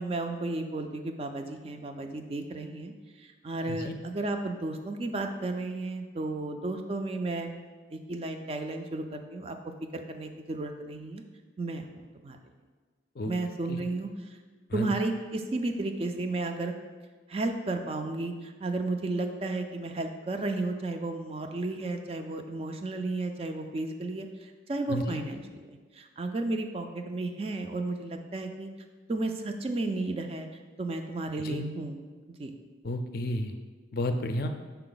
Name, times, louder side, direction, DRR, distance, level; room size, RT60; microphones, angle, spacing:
voice 1, 0.0-2.9 3.2-7.5 7.9-9.6 9.9-11.2 11.6-12.4 13.3-14.4 14.7-16.7 17.3-28.7 29.1-30.5 30.8-32.0 32.4-32.5, right 2 dB, 30° right, 5 dB, 0.3 m, -33 dB
voice 2, 24.9-25.2 31.4-31.7 32.8-33.5 33.9-34.5, left 1 dB, 50° left, 6 dB, 0.4 m, -32 dB
5.7 x 4.4 x 3.9 m, 1.4 s
head